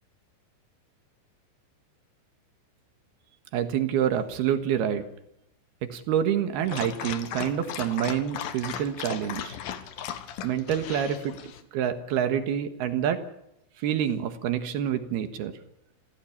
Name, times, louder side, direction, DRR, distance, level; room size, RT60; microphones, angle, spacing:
voice 1, 3.5-5.0 5.9-9.6 10.4-11.3 11.7-13.2 13.8-15.5, right 9 dB, 65° right, 10 dB, 3.0 m, -27 dB
Dog, 6.6-11.6, left 9 dB, 65° left, 2.6 m, -37 dB
28.5 x 15.5 x 8.6 m, 0.81 s
omnidirectional pair, 5.6 m